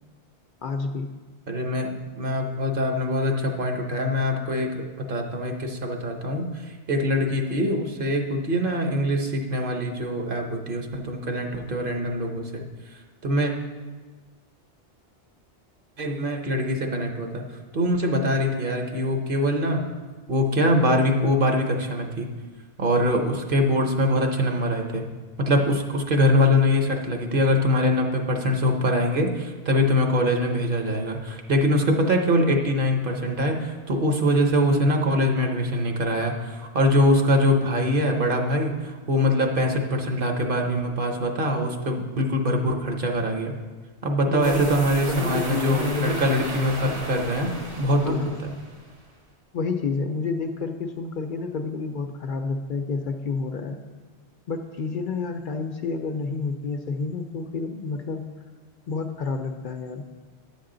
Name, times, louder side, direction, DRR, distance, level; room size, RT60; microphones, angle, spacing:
voice 1, 0.6-1.1 44.3-46.6 48.0-48.5 49.5-53.8 54.5-58.2 58.9-60.0, left 4 dB, 55° left, 5 dB, 0.7 m, -29 dB
voice 2, 1.5-6.5 6.9-12.6 13.2-13.5 16.0-17.4 17.7-19.8 20.3-22.3 22.8-25.0 25.4-43.5 44.0-47.5 47.8-48.2, equal, 55° right, 3 dB, 1.0 m, -23 dB
sound 1, 44.4-48.9, right 1 dB, 70° right, 1.8 m, -34 dB
10.5 x 7.3 x 3.8 m, 1.4 s
omnidirectional pair, 1.1 m